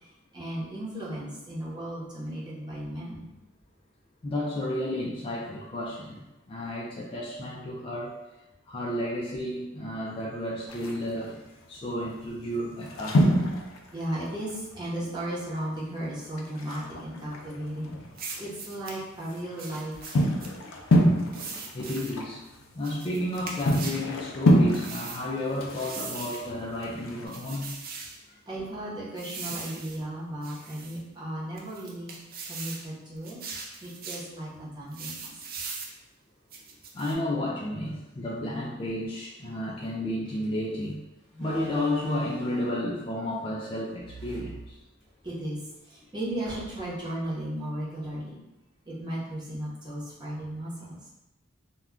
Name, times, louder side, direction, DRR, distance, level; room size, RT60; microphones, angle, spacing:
voice 1, 0.3-3.2 13.9-17.9 18.4-20.3 28.5-32.1 32.5-33.4 33.8-35.3 45.2-45.6 45.9-48.3 48.9-51.0, right 1 dB, 20° right, -7 dB, 0.8 m, -35 dB
voice 2, 4.2-8.2 8.7-11.4 11.7-13.2 21.7-22.4 22.7-27.8 28.3-28.4 29.5-29.6 36.9-41.0 41.4-44.8, left 1 dB, 25° left, -4 dB, 0.3 m, -32 dB
sound 1, 10.7-11.3 12.0-12.2 12.4-15.1 15.4-15.5 15.8-15.9 16.4-18.5 18.9-27.2, equal, 90° left, 0.5 m, -27 dB
sound 2, 18.2-19.0 19.6-20.5 21.3-22.2 22.8-24.0 24.7-25.2 25.8-26.5 27.3-28.2 29.2-30.0 30.4-31.0 31.6-32.9 33.2-34.3 34.9-35.9 36.5-37.1, right 4 dB, 45° right, 0.4 m, -40 dB
Slam, 40.2-40.4 41.3-42.9 43.9-45.3 45.7-45.8 46.4-47.1, right 1 dB, 65° right, 1.0 m, -43 dB
2.3 x 2.2 x 3.6 m, 0.97 s
head